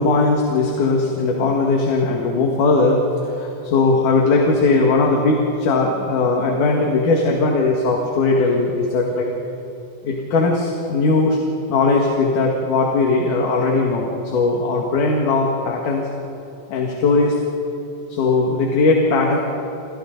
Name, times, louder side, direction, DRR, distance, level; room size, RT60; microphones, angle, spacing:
voice 1, 0.0-9.3 10.0-11.4 11.7-16.1 16.7-17.4 18.1-19.4, left 3 dB, 75° left, -1 dB, 3.4 m, -18 dB
28.5 x 28.5 x 4.0 m, 2.8 s
omnidirectional pair, 3.6 m